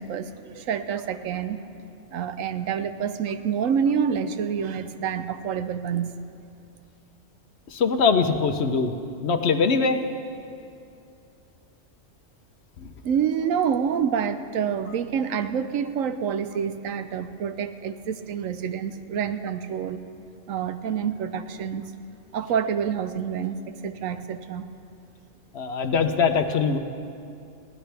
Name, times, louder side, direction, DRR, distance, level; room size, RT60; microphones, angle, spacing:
voice 1, 0.0-1.6 2.1-6.2 13.0-20.0 20.5-21.8 22.3-24.7, right 7 dB, 90° right, 10 dB, 1.1 m, -27 dB
voice 2, 7.7-8.9 9.2-10.0 12.8-12.9 25.5-26.8, left 5 dB, 60° left, 7 dB, 1.0 m, -22 dB
22.5 x 16.5 x 3.4 m, 2.6 s
omnidirectional pair, 1.3 m